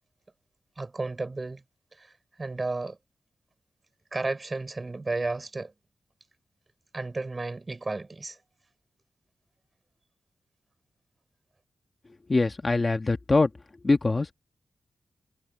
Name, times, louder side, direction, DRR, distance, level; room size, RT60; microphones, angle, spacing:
voice 1, 0.8-1.6 1.9-2.1 2.4-3.0 4.1-5.7 6.9-8.4, right 3 dB, 30° right, 5.0 m, -33 dB
voice 2, 12.3-13.5 13.8-14.3, left 3 dB, 30° left, 1.5 m, -23 dB
wide cardioid pair, 95°, 0 cm